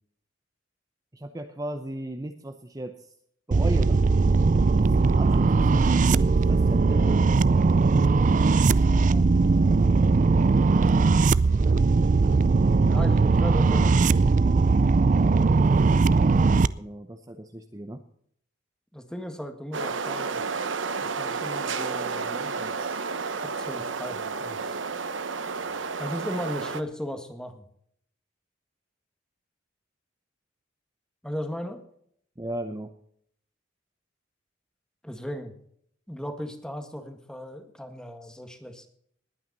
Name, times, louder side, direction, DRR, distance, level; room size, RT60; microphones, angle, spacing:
voice 1, 1.1-3.1 3.5-4.0 5.0-7.6 16.8-18.0 32.4-32.9, right 1 dB, 20° right, 6 dB, 0.8 m, -36 dB
sound 1, 3.5-16.7, right 4 dB, 40° right, 0.4 m, -20 dB
voice 2, 8.8-9.3 12.8-14.2 18.9-20.4 21.0-22.7 23.4-24.8 26.0-27.7 31.2-31.8 35.0-35.5 36.1-38.9, equal, 5° left, 6 dB, 1.6 m, -37 dB
sound 2, 19.7-26.8, right 4 dB, 75° right, 1.0 m, -31 dB
20.0 x 9.3 x 4.1 m, 0.67 s
head